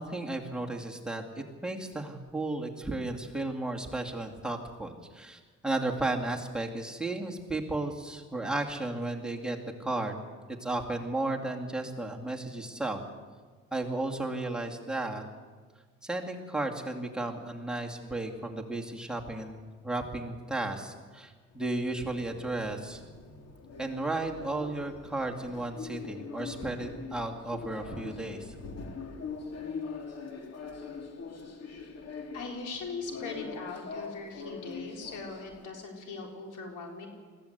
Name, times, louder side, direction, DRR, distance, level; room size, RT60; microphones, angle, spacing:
voice 1, 0.0-10.1 10.6-13.0 13.7-15.2 16.0-23.0 23.8-28.6, right 2 dB, 5° right, 4 dB, 2.4 m, -34 dB
sound 1, 21.5-35.7, left 5 dB, 55° left, 2.6 m, -43 dB
voice 2, 32.3-37.1, left 4 dB, 80° left, 1 dB, 4.2 m, -40 dB
21.0 x 15.0 x 8.2 m, 1.5 s
cardioid pair, 90°, 30 cm